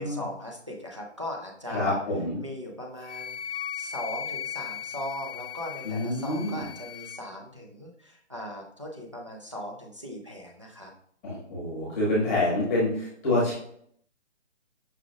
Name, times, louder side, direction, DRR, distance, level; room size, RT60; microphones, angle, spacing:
voice 1, 0.0-2.0 2.4-10.9, equal, 25° right, -2 dB, 0.4 m, -39 dB
voice 2, 1.7-2.4 5.8-6.6 11.2-13.5, left 1 dB, 15° left, -7 dB, 1.2 m, -27 dB
Wind instrument woodwind instrument, 3.0-7.2, left 9 dB, 80° left, 0.6 m, -37 dB
5.9 x 3.3 x 2.3 m, 0.65 s
hypercardioid pair, 170°, 36 cm